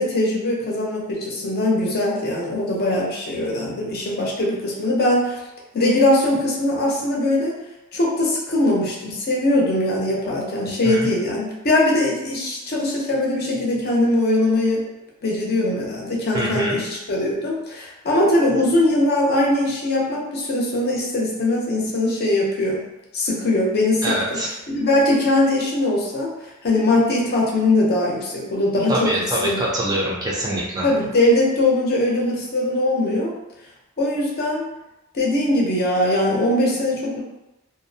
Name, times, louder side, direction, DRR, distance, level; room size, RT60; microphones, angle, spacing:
voice 1, 0.0-5.4 5.7-7.5 7.9-14.9 15.2-22.8 23.1-24.2 24.7-26.3 26.6-29.1 29.4-29.6 30.8-33.3 34.0-34.6 35.1-37.2, left 1 dB, 45° left, -3 dB, 0.6 m, -21 dB
voice 2, 16.3-16.8 24.0-24.5 28.9-30.9, right 1 dB, 20° right, -4 dB, 0.4 m, -24 dB
2.5 x 2.0 x 2.6 m, 0.94 s
head